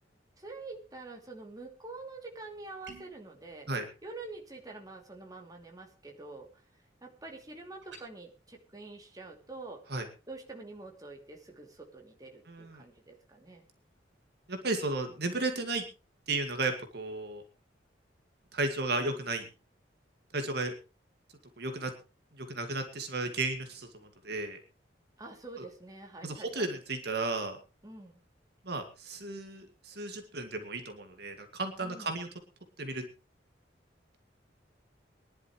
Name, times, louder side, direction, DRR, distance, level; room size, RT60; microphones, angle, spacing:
voice 1, 0.4-3.7 4.0-6.5 7.0-9.8 10.3-13.6 25.2-26.8 27.8-28.2 31.8-32.1, right 3 dB, 20° right, 1 dB, 2.8 m, -46 dB
sound 1, 2.8-3.2 7.8-8.1, right 4 dB, 75° right, 7.0 m, -49 dB
voice 2, 12.5-12.8 14.5-15.8 16.3-17.4 18.5-19.4 20.3-20.7 21.6-21.9 22.4-23.9 24.2-24.6 25.6-25.7 26.2-27.6 28.7-32.3 32.8-33.0, right 2 dB, 60° right, 6 dB, 2.0 m, -34 dB
22.5 x 11.0 x 3.1 m, 0.31 s
head